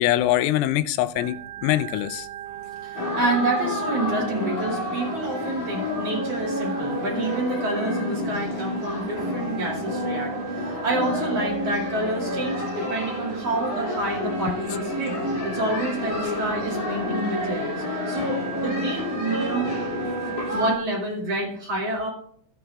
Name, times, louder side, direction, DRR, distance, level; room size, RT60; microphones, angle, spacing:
voice 1, 0.0-2.3, left 14 dB, 85° left, 3.1 m, -23 dB
Organ, 1.2-20.8, right 13 dB, 85° right, 2.6 m, -38 dB
voice 2, 2.7-19.7 20.5-22.1, right 2 dB, 40° right, 2.8 m, -28 dB
sound 1, 3.0-20.7, left 2 dB, 60° left, 4.3 m, -29 dB
16.5 x 7.9 x 2.4 m
omnidirectional pair, 5.5 m